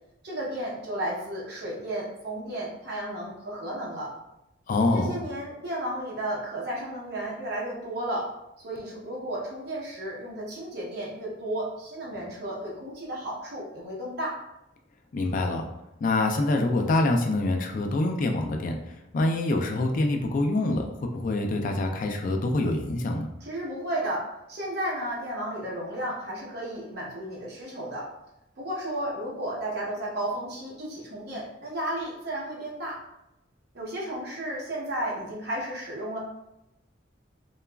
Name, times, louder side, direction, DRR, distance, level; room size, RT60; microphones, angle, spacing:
voice 1, 0.2-4.2 4.9-8.3 8.6-14.4 23.4-28.1 28.6-33.0 33.7-36.2, right 1 dB, 60° right, -4 dB, 0.8 m, -33 dB
voice 2, 4.7-5.2 15.1-15.7 16.0-23.3, left 2 dB, 45° left, 3 dB, 0.3 m, -25 dB
2.9 x 2.3 x 2.2 m, 0.88 s
head